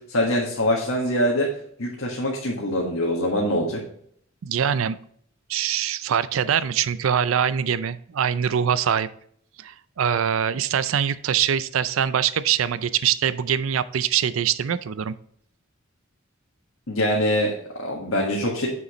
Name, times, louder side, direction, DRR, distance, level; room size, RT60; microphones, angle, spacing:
voice 1, 0.1-1.5 1.8-3.8 16.9-18.7, left 1 dB, 80° left, -3 dB, 1.6 m, -24 dB
voice 2, 4.4-5.0 5.5-9.1 9.6-15.1, right 8 dB, 70° right, 16 dB, 0.4 m, -23 dB
7.0 x 6.6 x 3.1 m, 0.64 s
head